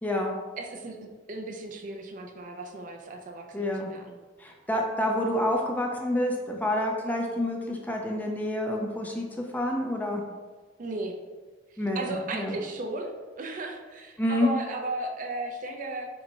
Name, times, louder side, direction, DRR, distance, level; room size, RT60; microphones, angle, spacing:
voice 1, 0.0-0.3 3.5-3.9 4.4-9.3 9.5-10.2 11.8-12.5 14.2-14.5, left 1 dB, 10° left, 0 dB, 0.4 m, -28 dB
voice 2, 0.6-4.2 10.8-11.1 11.7-16.1, right 2 dB, 45° right, 3 dB, 0.5 m, -36 dB
6.8 x 2.9 x 2.6 m, 1.4 s
head